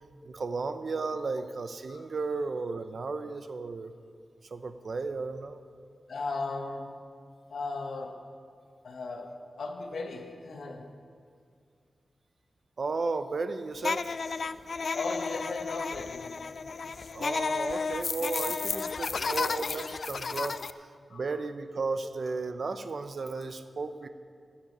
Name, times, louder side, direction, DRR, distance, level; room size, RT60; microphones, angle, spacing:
voice 1, 0.2-3.9 4.5-5.6 12.8-14.1 17.1-20.6 21.1-24.1, right 4 dB, 55° right, 10 dB, 0.7 m, -34 dB
voice 2, 6.1-7.1 7.5-8.3 8.8-10.9 14.6-16.4 19.1-19.4 21.1-21.3, left 3 dB, 75° left, 3 dB, 1.4 m, -37 dB
sound 1, 13.8-20.7, left 4 dB, 55° left, 0.3 m, -32 dB
15.0 x 8.6 x 6.1 m, 2.3 s
wide cardioid pair, 100°, 0 cm